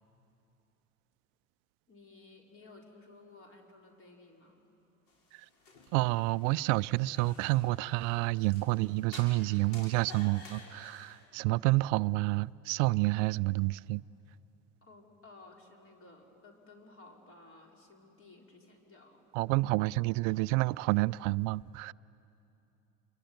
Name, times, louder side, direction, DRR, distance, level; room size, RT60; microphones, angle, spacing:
voice 1, 1.9-4.6 14.8-19.3, left 3 dB, 30° left, 4.2 m, -56 dB
sound 1, 5.1-11.2, left 3 dB, 45° left, 6.1 m, -53 dB
voice 2, 5.9-14.0 19.3-21.9, right 21 dB, 55° right, 0.5 m, -29 dB
28.0 x 22.5 x 9.4 m
hypercardioid pair, 85°, 45 cm